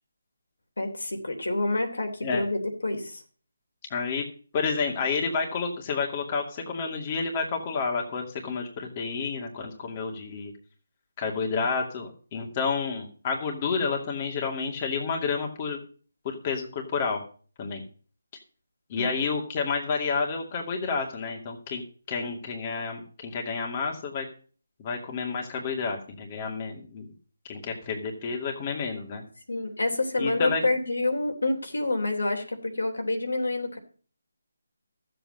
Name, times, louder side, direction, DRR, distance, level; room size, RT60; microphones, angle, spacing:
voice 1, 0.8-3.2 19.0-19.2 29.5-33.8, left 2 dB, 75° left, 3 dB, 3.3 m, -28 dB
voice 2, 3.9-4.2 4.5-10.5 11.2-15.8 16.2-17.2 17.6-17.8 18.9-21.8 22.1-24.3 24.8-27.1 27.5-29.2 30.2-30.6, left 5 dB, 30° left, 1 dB, 2.4 m, -30 dB
13.5 x 7.9 x 5.4 m, 0.41 s
figure-of-eight pair, 155°, 0 cm